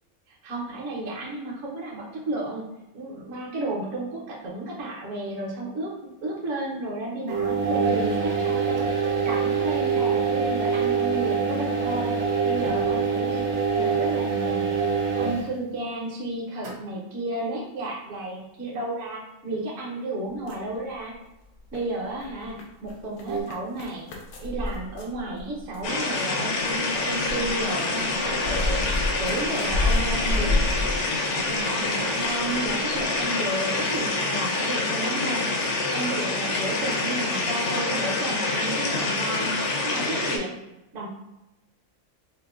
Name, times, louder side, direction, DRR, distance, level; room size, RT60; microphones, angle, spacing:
voice 1, 0.3-2.7 2.9-5.9 6.2-12.1 12.4-13.5 13.8-21.1 21.7-24.1 24.4-28.8 29.2-30.7 31.3-35.5 35.9-40.6 40.9-41.1, right 2 dB, 65° right, -3 dB, 1.2 m, -32 dB
sound 1, 7.3-15.6 16.6-16.7 23.3-23.4, right 5 dB, 85° right, 1.2 m, -25 dB
sound 2, 20.3-21.3 21.6-26.0 26.6-31.9 32.2-33.1 33.5-33.6 33.9-34.0, left 2 dB, 80° left, 1.1 m, -29 dB
sound 3, 25.8-40.4, left 2 dB, 65° left, 0.9 m, -26 dB
5.1 x 2.1 x 2.3 m, 0.94 s
omnidirectional pair, 1.5 m